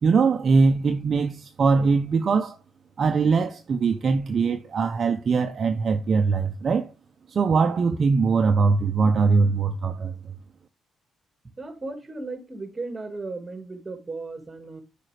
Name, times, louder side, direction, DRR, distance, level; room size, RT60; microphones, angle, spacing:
voice 1, 0.0-2.6 3.0-6.9 7.3-10.1, right 4 dB, 45° right, 0.7 m, -21 dB
voice 2, 11.6-14.8, right 3 dB, 25° right, 2.0 m, -35 dB
9.0 x 5.1 x 3.3 m
cardioid pair, 90°, 0 cm